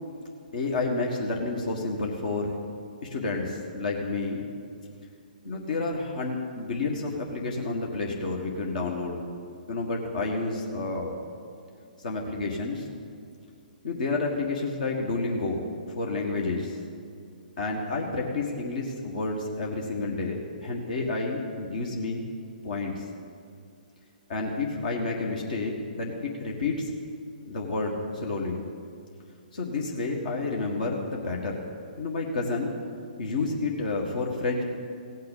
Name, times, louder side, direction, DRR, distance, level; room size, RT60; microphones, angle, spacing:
voice 1, 0.5-2.5 3.0-4.4 5.4-9.2 9.7-11.2 12.0-12.9 13.8-16.8 17.6-22.2 22.6-23.0 24.3-26.9 27.5-28.6 29.5-31.6 32.0-32.8 33.2-34.6, left 3 dB, 60° left, 0 dB, 1.7 m, -30 dB
16.5 x 6.6 x 8.3 m, 2.3 s
figure-of-eight pair, 130°, 5 cm